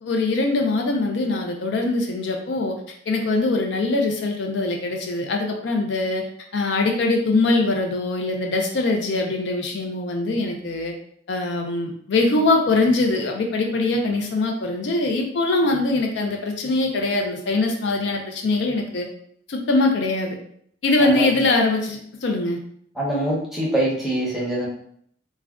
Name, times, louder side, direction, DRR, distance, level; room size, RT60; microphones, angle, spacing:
voice 1, 0.0-2.8 3.1-6.2 6.5-10.9 11.3-19.1 19.5-20.4 20.8-22.6, left 2 dB, 60° left, 2 dB, 0.4 m, -22 dB
voice 2, 21.0-21.4 23.0-24.7, right 1 dB, ahead, -5 dB, 0.7 m, -24 dB
2.4 x 2.1 x 3.4 m, 0.65 s
head